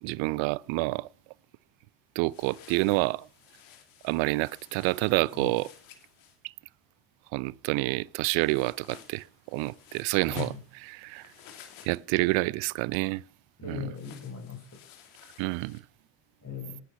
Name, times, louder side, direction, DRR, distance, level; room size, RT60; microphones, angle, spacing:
voice 1, 0.0-1.1 2.2-3.3 4.0-5.7 7.3-9.2 9.5-10.5 10.9-11.2 11.8-13.2 13.6-13.8 15.4-15.8, right 22 dB, 70° right, 0.7 m, -28 dB
sound 1, 2.3-6.4 8.4-12.4 13.9-15.8, left 9 dB, 75° left, 2.8 m, -53 dB
voice 2, 10.2-10.6 13.6-14.8 16.4-16.8, left 7 dB, 30° left, 7.5 m, -38 dB
19.0 x 9.6 x 5.7 m
hypercardioid pair, 60°, 47 cm